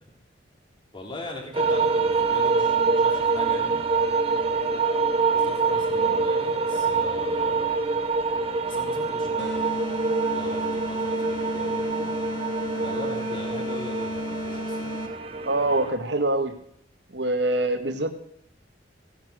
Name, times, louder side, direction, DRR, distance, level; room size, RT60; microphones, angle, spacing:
voice 1, 0.9-3.8 5.3-7.8 8.6-9.7 10.0-12.1 12.7-14.9, left 1 dB, 30° left, 0 dB, 3.5 m, -40 dB
sound 1, 1.5-15.9, right 4 dB, 30° right, 1.3 m, -25 dB
sound 2, 9.4-15.3, left 1 dB, 80° left, 1.7 m, -34 dB
voice 2, 15.4-16.6 17.1-18.1, right 2 dB, 70° right, 7 dB, 1.8 m, -25 dB
17.0 x 10.5 x 6.4 m, 0.71 s
head